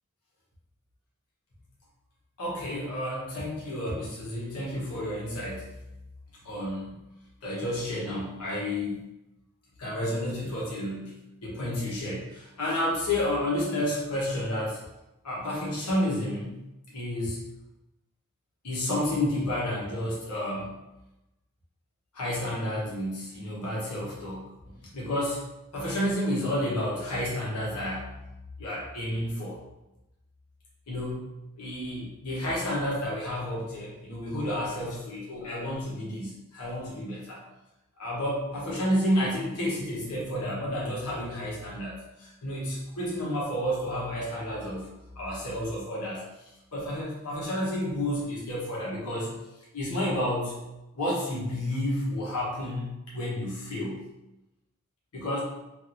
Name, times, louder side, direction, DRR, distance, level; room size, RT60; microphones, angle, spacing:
voice 1, 2.4-5.7 6.4-6.9 7.4-9.0 9.8-14.8 15.2-16.6 16.9-17.4 18.6-20.8 22.1-24.5 24.9-25.5 25.7-28.1 28.6-29.6 30.9-31.2 31.5-37.4 38.0-49.3 49.7-50.5 50.9-54.0 55.1-55.4, left 1 dB, 90° left, -6 dB, 1.0 m, -31 dB
2.9 x 2.6 x 2.6 m, 0.96 s
head